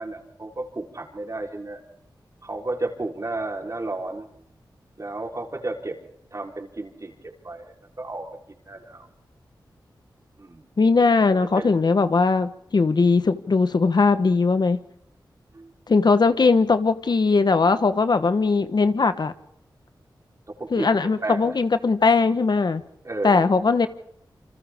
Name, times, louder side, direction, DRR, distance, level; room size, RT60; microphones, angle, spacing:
voice 1, 0.0-1.8 2.4-4.3 5.0-6.0 6.3-7.1 7.4-8.3 8.7-9.1 10.4-10.6 11.6-11.7 15.5-15.7 20.5-21.5 23.0-23.5, right 2 dB, 40° right, 3.9 m, -32 dB
voice 2, 10.8-14.8 15.9-19.3 20.7-22.8 23.2-23.9, left 4 dB, 60° left, 1.2 m, -19 dB
28.5 x 26.0 x 3.6 m
wide cardioid pair, 70°, 8 cm